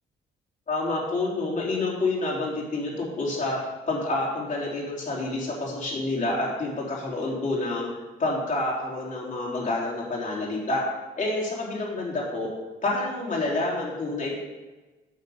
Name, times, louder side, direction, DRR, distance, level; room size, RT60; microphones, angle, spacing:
voice 1, 0.7-3.6 3.9-7.9 8.2-10.8 11.2-12.5 12.8-14.3, left 2 dB, 40° left, -5 dB, 3.3 m, -28 dB
7.5 x 6.5 x 5.6 m, 1.2 s
cardioid pair, 90°, 20 cm